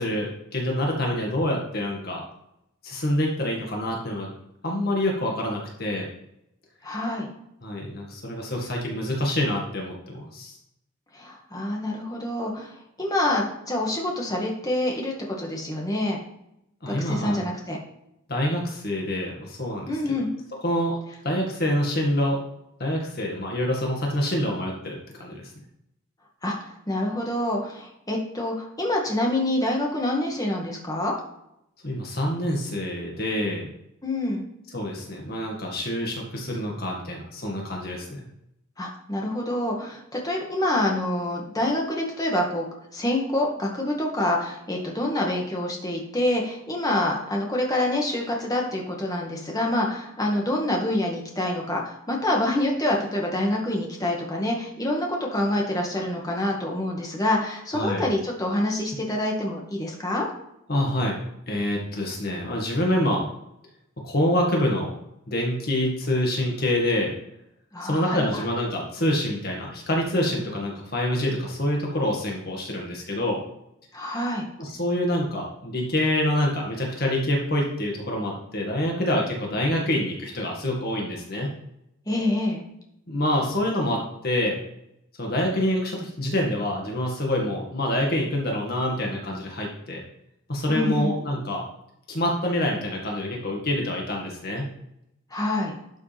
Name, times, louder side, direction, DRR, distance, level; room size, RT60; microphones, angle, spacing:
voice 1, 0.0-2.2 2.8-4.3 4.6-6.1 7.6-10.6 16.8-17.4 18.3-19.9 20.6-21.0 21.2-22.4 22.8-25.4 31.8-33.7 34.7-38.2 57.7-58.1 60.7-61.2 61.5-63.3 64.0-64.9 65.3-67.1 67.8-73.4 74.6-81.5 83.1-84.6 85.2-90.0 90.5-91.6 92.1-94.7, left 1 dB, 50° left, -1 dB, 2.0 m, -26 dB
voice 2, 6.8-7.3 11.1-12.7 13.0-16.2 16.9-17.8 19.9-20.3 26.4-31.1 34.0-34.4 38.8-42.7 42.9-60.3 67.7-68.4 73.9-74.4 82.1-82.6 90.7-91.1 95.3-95.7, left 1 dB, 15° left, -1 dB, 1.9 m, -26 dB
12.0 x 6.8 x 3.5 m, 0.80 s
head